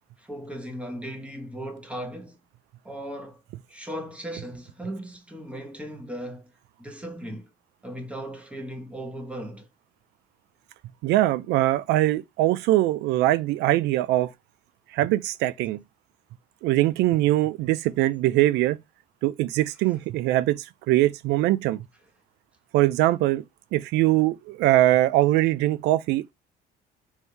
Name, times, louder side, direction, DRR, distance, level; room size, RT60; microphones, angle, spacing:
voice 1, 0.2-2.4 2.8-3.4 3.7-6.5 6.8-7.5 7.8-9.7, equal, 5° right, 1.1 m, -37 dB
voice 2, 11.0-14.3 14.9-15.8 16.6-18.8 19.2-21.9 22.7-23.4 23.7-26.3, right 16 dB, 85° right, 0.4 m, -22 dB
3.5 x 2.7 x 4.5 m
cardioid pair, 110°, 17 cm